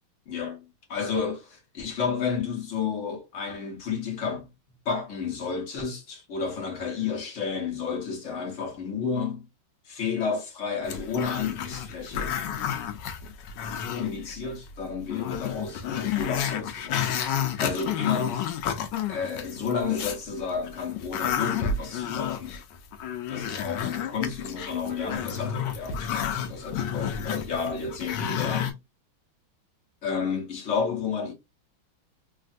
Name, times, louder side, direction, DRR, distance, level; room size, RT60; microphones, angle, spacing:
voice 1, 0.3-4.5 4.8-9.5 9.8-12.4 13.9-17.1 17.6-18.5 19.1-22.6 23.3-28.8 30.0-31.3, left 6 dB, 50° left, 1.0 m, -31 dB
Growling, 10.8-14.3 14.7-14.8 15.1-20.2 20.6-28.7, left 8 dB, 75° left, 1.1 m, -31 dB
3.3 x 2.4 x 2.4 m
omnidirectional pair, 2.2 m